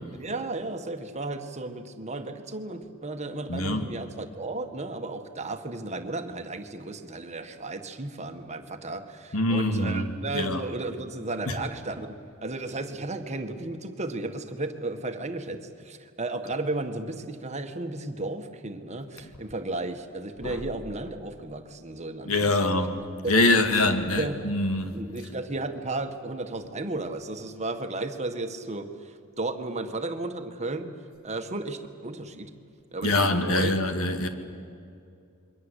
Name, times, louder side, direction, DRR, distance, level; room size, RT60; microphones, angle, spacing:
voice 1, 0.1-22.8 23.2-23.3 23.7-24.4 24.9-30.9 31.2-32.5 32.9-33.7, right 2 dB, 35° right, 6 dB, 1.8 m, -34 dB
voice 2, 3.5-3.9 9.3-10.7 11.5-11.6 20.4-20.6 22.3-23.0 23.3-24.9 33.0-34.3, left 2 dB, 85° left, 7 dB, 2.3 m, -24 dB
27.5 x 23.0 x 8.3 m, 2.5 s
head